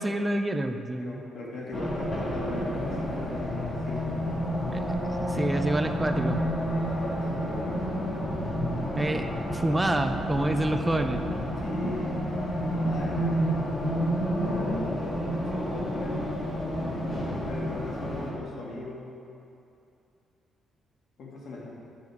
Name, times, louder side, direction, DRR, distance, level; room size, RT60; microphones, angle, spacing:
voice 1, 0.0-1.2 4.7-4.8 5.2-6.4 8.9-9.3 9.5-11.2, right 1 dB, 15° right, 6 dB, 0.6 m, -27 dB
voice 2, 1.0-4.1 6.8-7.8 11.6-12.2 12.7-13.5 14.2-14.8 15.4-16.3 16.6-19.2 21.2-21.8, left 1 dB, 65° left, -4 dB, 2.1 m, -39 dB
Race car auto racing, 1.7-18.3, equal, 35° left, 1.8 m, -30 dB
11.5 x 6.7 x 3.6 m, 2.7 s
cardioid pair, 90°, 0 cm